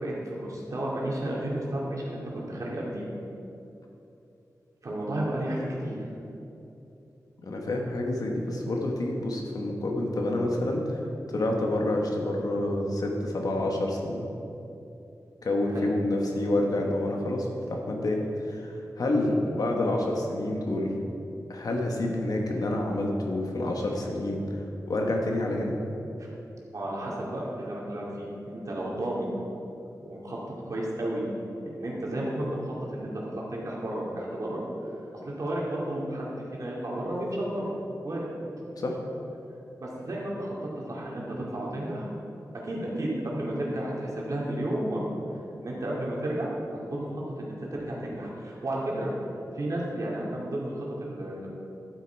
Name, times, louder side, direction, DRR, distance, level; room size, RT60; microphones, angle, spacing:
voice 1, 0.0-3.0 4.8-6.0 15.7-15.8 26.2-26.3 26.7-29.3 30.0-30.4 30.7-31.2 31.6-34.6 35.2-36.3 36.5-37.7 38.0-38.3 39.8-42.1 42.6-45.1 45.5-49.1 49.5-51.5, right 1 dB, 60° right, -4 dB, 2.5 m, -32 dB
voice 2, 7.4-11.0 11.3-14.3 15.4-21.0 21.5-24.4 24.9-25.8 38.7-39.0, left 1 dB, 70° left, 1 dB, 1.5 m, -28 dB
12.0 x 8.2 x 4.7 m, 2.8 s
wide cardioid pair, 120°, 7 cm